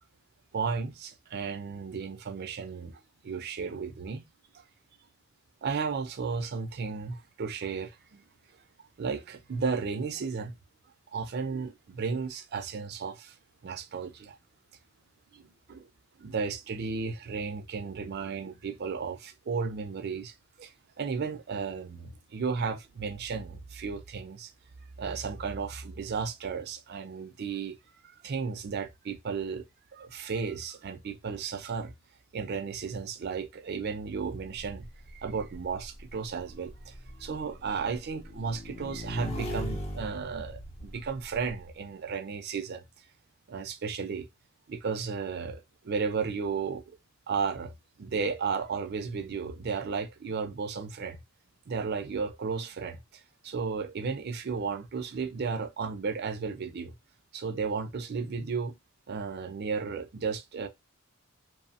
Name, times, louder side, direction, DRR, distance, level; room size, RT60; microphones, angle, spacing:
voice 1, 0.5-4.2 4.5-4.6 5.6-8.2 9.0-10.5 11.1-13.3 13.6-14.4 15.3-15.9 16.2-24.5 25.0-27.8 28.0-29.6 29.9-31.9 32.3-36.9 37.2-42.8 43.5-44.3 44.7-46.8 47.3-47.7 48.0-51.2 51.7-56.9 57.3-58.8 59.1-60.7, right 5 dB, 50° right, 0.4 m, -34 dB
Motorcycle / Engine, 34.5-41.6, equal, 30° left, 0.5 m, -40 dB
3.0 x 2.0 x 2.7 m
head